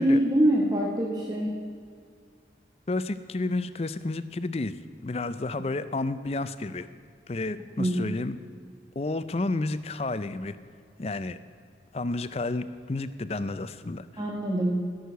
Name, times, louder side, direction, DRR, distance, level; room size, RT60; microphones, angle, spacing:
voice 1, 0.0-1.6 7.8-8.1 14.2-14.8, right 1 dB, 25° right, -3 dB, 1.1 m, -24 dB
voice 2, 2.9-4.8 5.0-6.9 7.3-8.4 9.0-10.6 11.0-11.4 11.9-14.2, left 2 dB, 35° left, 13 dB, 0.5 m, -31 dB
16.0 x 6.5 x 6.9 m, 2.2 s
head